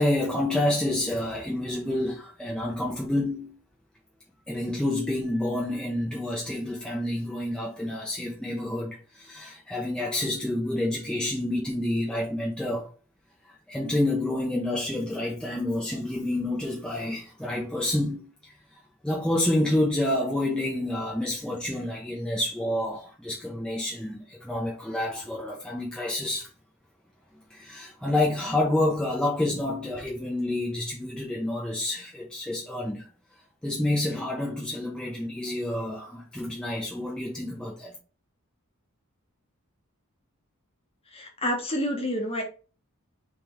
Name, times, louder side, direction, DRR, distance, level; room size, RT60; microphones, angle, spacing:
voice 1, 0.0-3.6 4.5-12.9 13.7-18.5 19.0-26.5 27.5-33.1 33.6-37.9, left 1 dB, 5° left, 0.7 m, -28 dB
voice 2, 41.1-42.4, equal, 25° left, 1.1 m, -28 dB
3.6 x 3.3 x 4.4 m
head